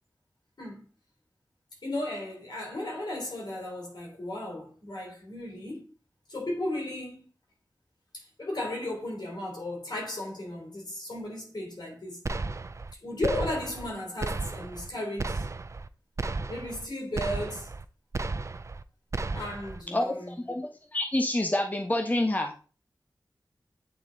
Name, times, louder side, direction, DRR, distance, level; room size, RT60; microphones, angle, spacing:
voice 1, 1.8-5.9 6.3-7.2 8.1-12.2 13.0-15.5 16.5-17.7 19.3-20.4, left 1 dB, 70° left, 3.5 m, -35 dB
sound 1, 12.3-12.9 13.2-13.9 14.2-14.9 15.2-15.9 16.2-16.9 17.2-17.9 18.1-18.8 19.1-19.8, right 3 dB, 40° right, 0.4 m, -34 dB
voice 2, 19.9-22.5, left 1 dB, 20° left, 0.8 m, -28 dB
9.0 x 4.0 x 3.8 m
wide cardioid pair, 75°, 7 cm